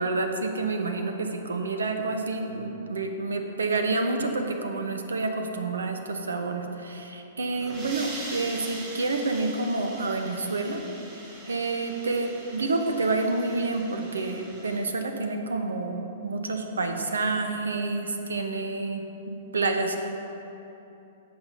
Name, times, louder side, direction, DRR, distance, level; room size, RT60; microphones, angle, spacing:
voice 1, 0.0-10.8 11.5-20.0, right 3 dB, 70° right, 5 dB, 1.1 m, -28 dB
sound 1, 7.4-14.8, right 2 dB, 30° right, 2.5 m, -43 dB
16.0 x 6.1 x 5.2 m, 2.9 s
figure-of-eight pair, 110°, 0 cm